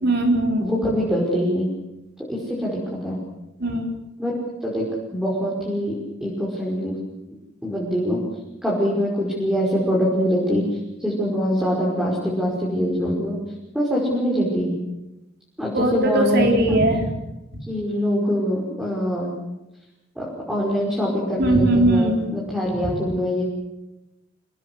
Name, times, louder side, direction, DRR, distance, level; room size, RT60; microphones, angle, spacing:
voice 1, 0.0-0.8 3.6-3.9 15.7-17.1 21.4-22.3 22.8-22.9, right 1 dB, 55° right, 3 dB, 4.3 m, -20 dB
voice 2, 0.6-1.7 2.3-3.2 4.2-4.3 4.6-4.8 5.1-6.9 7.6-8.2 8.6-10.6 11.0-13.4 13.7-14.8 15.6-16.8 17.7-19.3 20.2-23.4, equal, 5° right, -4 dB, 5.7 m, -24 dB
27.0 x 18.5 x 8.1 m, 0.97 s
head